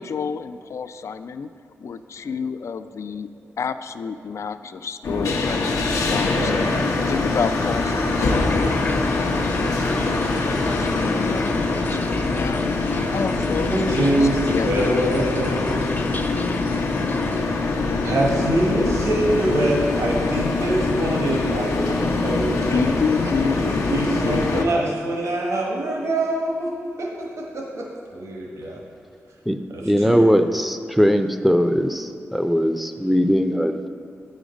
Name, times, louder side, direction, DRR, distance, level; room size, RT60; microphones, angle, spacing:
voice 1, 0.0-1.5 1.8-3.3 3.6-9.3 10.4-15.4 15.8-16.2 17.0-17.2 22.7-24.8, left 6 dB, 65° left, 11 dB, 0.3 m, -29 dB
sound 1, 5.0-24.6, left 3 dB, 85° left, 0.8 m, -23 dB
voice 2, 6.3-6.8 13.7-16.0 18.0-22.8 23.5-26.7 27.0-28.8 29.7-30.3, right 1 dB, 75° right, -1 dB, 1.2 m, -24 dB
sound 2, 8.2-17.4, left 2 dB, 40° left, 0.7 m, -35 dB
voice 3, 29.8-33.9, equal, ahead, 7 dB, 0.5 m, -20 dB
8.5 x 5.1 x 5.1 m, 2.3 s
cardioid pair, 55°, 5 cm